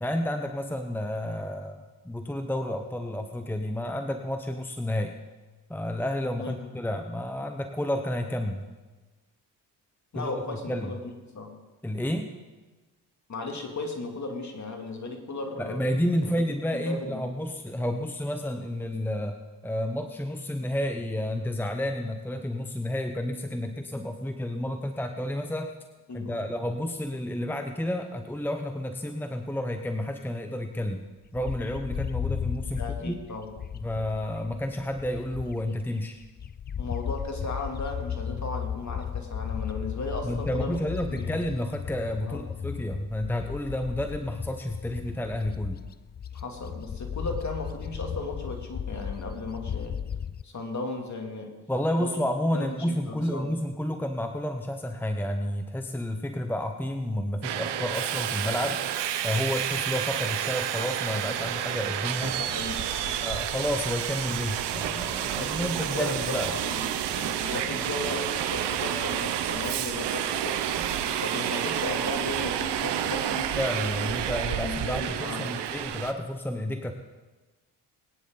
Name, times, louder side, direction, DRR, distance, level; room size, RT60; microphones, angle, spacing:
voice 1, 0.0-5.1 5.7-8.6 10.1-10.9 11.8-12.3 15.6-19.4 19.6-25.7 26.1-31.0 31.3-33.2 33.8-36.2 40.2-45.8 51.7-58.8 59.2-62.4 63.2-66.5 70.8-70.9 73.5-76.9, left 1 dB, 5° left, 6 dB, 1.1 m, -30 dB
voice 2, 6.4-6.7 10.1-11.6 13.3-15.8 16.2-16.4 16.7-17.3 26.1-26.4 32.7-33.5 36.8-40.8 41.1-41.3 42.2-42.4 46.3-50.0 50.4-51.6 52.0-52.1 52.5-53.5 62.4-63.2 65.4-70.6 71.0-73.6 74.5-75.6, left 2 dB, 40° left, 2 dB, 2.9 m, -36 dB
Bird, 31.4-35.8 36.2-50.4, left 8 dB, 25° left, 0.3 m, -35 dB
Subway metro underground, 57.4-76.1, right 10 dB, 75° right, 1.1 m, -30 dB
21.5 x 9.8 x 4.0 m, 1.2 s
supercardioid pair, 60°, 42 cm